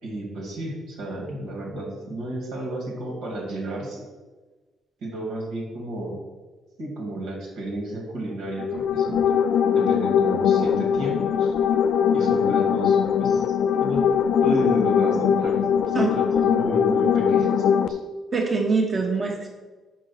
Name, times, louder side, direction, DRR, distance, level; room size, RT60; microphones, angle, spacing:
voice 1, 0.0-4.0 5.0-6.2 6.8-9.2 9.7-11.5 12.1-14.1 14.4-18.0, right 1 dB, 90° right, -1 dB, 2.2 m, -32 dB
sound 1, 8.4-17.9, left 7 dB, 80° left, 0.4 m, -21 dB
voice 2, 18.3-19.5, right 4 dB, 35° right, 0 dB, 1.0 m, -23 dB
5.4 x 5.0 x 5.5 m, 1.3 s
cardioid pair, 90°, 0 cm